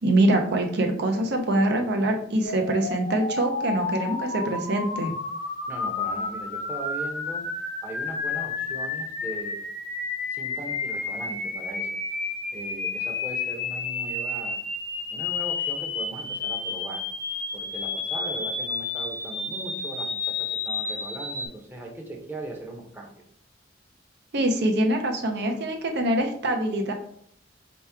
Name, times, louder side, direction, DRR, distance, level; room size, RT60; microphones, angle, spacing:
voice 1, 0.0-5.1 24.3-26.9, right 1 dB, 60° right, 4 dB, 0.7 m, -24 dB
sound 1, 2.4-21.5, left 4 dB, 50° left, 0.9 m, -31 dB
voice 2, 5.7-7.4 7.8-9.6 10.3-11.9 12.5-14.6 15.1-17.1 17.5-23.2, right 2 dB, 10° right, 0 dB, 0.8 m, -39 dB
4.6 x 3.0 x 3.4 m, 0.63 s
head